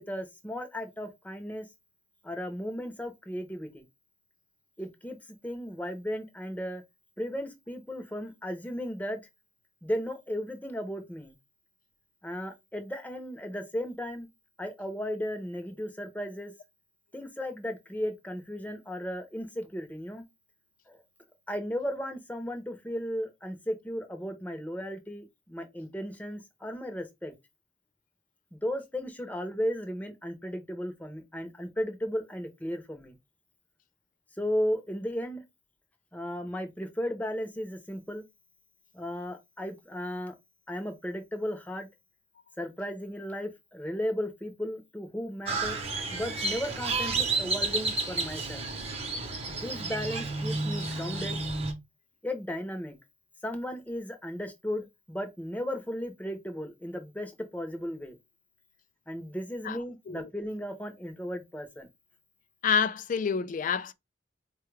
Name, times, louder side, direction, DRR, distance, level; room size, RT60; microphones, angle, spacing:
voice 1, 0.0-1.7 2.2-3.8 4.8-5.2 5.4-6.8 7.2-9.2 9.8-11.3 12.2-14.3 14.6-16.5 17.1-20.2 20.9-21.0 21.5-27.3 28.5-33.2 34.4-35.4 36.1-38.2 38.9-40.3 40.7-41.9 42.6-45.8 46.1-48.6 49.5-51.4 52.2-53.0 53.4-58.2 59.1-61.9, equal, 10° left, 0.7 m, -35 dB
Crow, 45.5-51.7, right 3 dB, 35° right, 0.9 m, -31 dB
voice 2, 62.6-63.9, left 6 dB, 45° left, 0.3 m, -27 dB
4.4 x 2.3 x 3.2 m
head